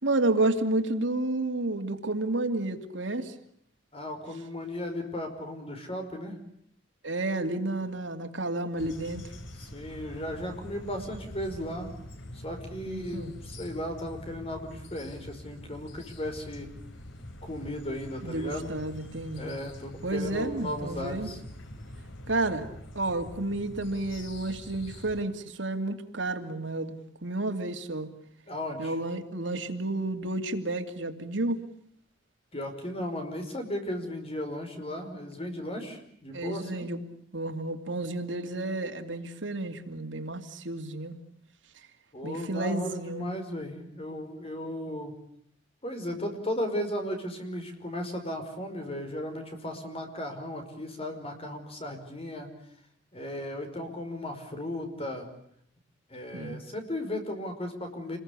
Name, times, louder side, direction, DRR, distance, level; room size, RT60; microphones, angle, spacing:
voice 1, 0.0-3.3 7.0-9.2 12.9-13.3 18.2-19.5 20.0-21.3 22.3-22.7 22.9-28.1 28.8-31.6 36.3-37.0 37.3-41.1 42.2-43.3 56.3-56.6, right 2 dB, 80° right, 6 dB, 2.6 m, -31 dB
voice 2, 3.9-6.4 9.6-11.9 12.3-16.7 17.4-18.7 19.3-21.4 28.5-29.0 32.5-36.9 42.1-45.2 45.8-52.5 53.1-55.3 56.1-58.2, left 1 dB, 30° left, 6 dB, 5.2 m, -36 dB
sound 1, 8.8-25.2, left 1 dB, 75° left, 3.2 m, -45 dB
28.5 x 21.5 x 8.4 m, 0.69 s
head